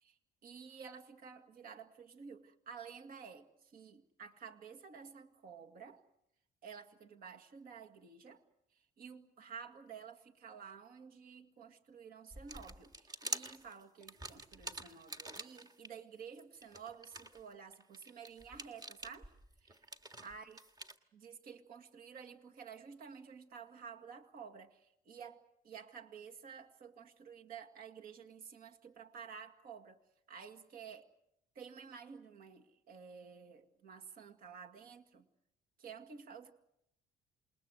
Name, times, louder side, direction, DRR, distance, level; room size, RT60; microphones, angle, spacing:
voice 1, 0.0-6.0 6.6-8.4 8.7-19.3 19.6-19.8 20.2-20.6 21.1-30.0 30.3-31.1 31.6-35.3 35.8-36.5, right 6 dB, 60° right, 5 dB, 2.1 m, -52 dB
sound 1, 12.3-15.9 16.3-21.0, right 2 dB, 25° right, 1.8 m, -47 dB
28.0 x 21.0 x 8.1 m, 0.80 s
cardioid pair, 110°, 17 cm